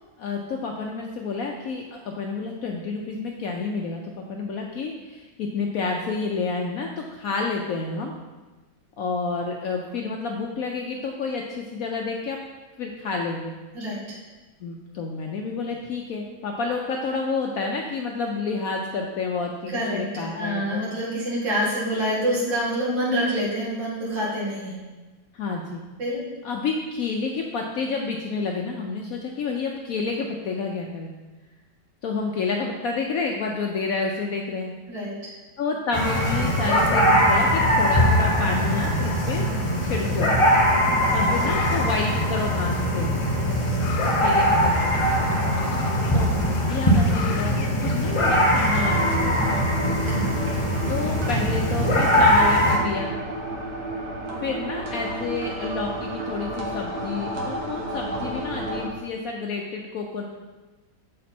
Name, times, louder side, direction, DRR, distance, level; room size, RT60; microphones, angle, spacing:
voice 1, 0.2-8.1 9.0-12.4 12.8-13.5 14.6-20.8 25.3-25.8 26.4-31.1 32.0-34.7 35.6-39.5 39.8-40.3 41.1-43.2 44.2-45.0 46.1-49.6 50.9-53.1 54.4-60.2, left 4 dB, 70° left, 1 dB, 0.8 m, -29 dB
voice 2, 13.7-14.2 19.7-24.9 26.0-26.2 34.9-35.3 40.8-41.2 50.1-50.4, equal, 75° right, -7 dB, 2.5 m, -27 dB
sound 1, 35.9-52.8, equal, 35° left, 0.5 m, -21 dB
sound 2, 40.7-48.7, left 5 dB, 85° left, 1.4 m, -37 dB
sound 3, 48.7-58.9, right 1 dB, 60° right, 1.6 m, -32 dB
6.8 x 5.2 x 4.3 m, 1.2 s
omnidirectional pair, 2.0 m